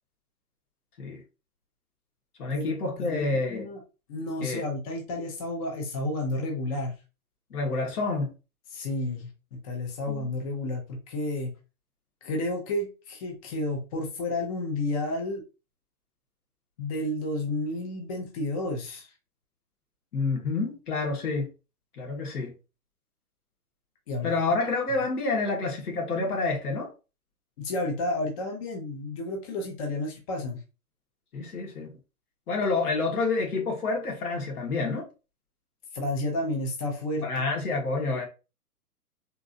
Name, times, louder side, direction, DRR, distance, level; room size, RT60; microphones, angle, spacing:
voice 1, 2.4-3.7 4.4-4.6 7.5-8.3 10.1-10.3 20.1-21.5 22.0-22.5 24.2-26.9 31.3-31.9 32.5-35.1 37.2-38.3, left 3 dB, 70° left, 1.7 m, -28 dB
voice 2, 3.0-3.8 4.1-6.9 8.7-11.5 12.2-15.4 16.8-19.1 24.1-24.3 27.6-30.6 35.9-37.3, left 1 dB, 25° left, 0.6 m, -31 dB
3.7 x 2.6 x 2.6 m
hypercardioid pair, 135°, 48 cm